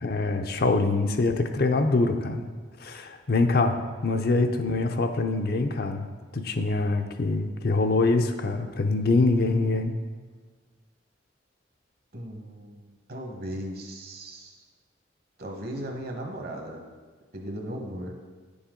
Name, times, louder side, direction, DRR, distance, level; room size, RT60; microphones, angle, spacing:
voice 1, 0.0-2.4 2.8-3.8 4.0-6.1 6.3-9.9, left 3 dB, 55° left, 6 dB, 0.6 m, -24 dB
voice 2, 12.1-14.6 15.4-16.8 17.3-18.2, right 1 dB, 55° right, 2 dB, 1.3 m, -37 dB
9.7 x 7.0 x 3.8 m, 1.4 s
head